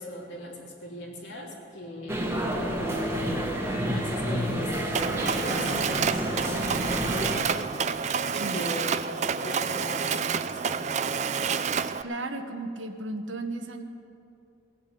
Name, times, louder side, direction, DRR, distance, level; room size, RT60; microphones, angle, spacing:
voice 1, 0.0-2.3 2.5-3.2 3.8-7.7 8.3-9.1 9.4-10.8, left 1 dB, 70° left, -2 dB, 3.0 m, -39 dB
sound 1, 2.1-7.4, equal, 15° right, 1.4 m, -29 dB
Mechanisms, 4.9-12.0, right 6 dB, 40° right, 0.4 m, -29 dB
voice 2, 12.0-13.8, right 2 dB, 85° right, 6 dB, 1.2 m, -34 dB
18.5 x 7.4 x 8.5 m, 2.6 s
head